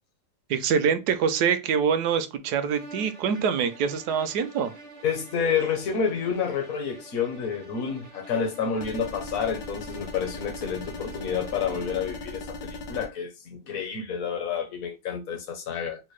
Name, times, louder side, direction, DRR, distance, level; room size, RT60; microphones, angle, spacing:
voice 1, 0.5-4.7, right 7 dB, 70° right, 1.0 m, -25 dB
sound 1, 2.6-12.3, right 2 dB, 55° right, 0.4 m, -48 dB
voice 2, 5.0-16.0, left 6 dB, 60° left, 1.1 m, -29 dB
sound 2, 8.8-13.1, left 2 dB, 90° left, 1.4 m, -38 dB
4.3 x 2.1 x 3.1 m
omnidirectional pair, 2.0 m